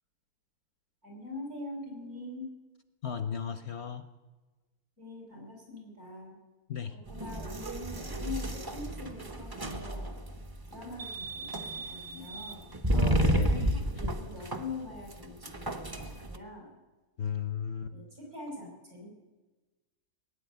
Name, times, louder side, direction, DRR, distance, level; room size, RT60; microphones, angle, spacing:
voice 1, 1.0-2.5 5.0-6.4 6.8-10.2 10.7-12.7 13.9-16.7 17.9-19.1, left 2 dB, 80° right, -1 dB, 5.7 m, -43 dB
voice 2, 3.0-4.1 6.7-7.0 12.9-13.8 17.2-17.9, left 7 dB, 60° left, 10 dB, 0.8 m, -35 dB
sound 1, 7.1-16.4, right 1 dB, 20° right, 0.6 m, -32 dB
19.0 x 9.5 x 8.0 m, 1.2 s
omnidirectional pair, 1.6 m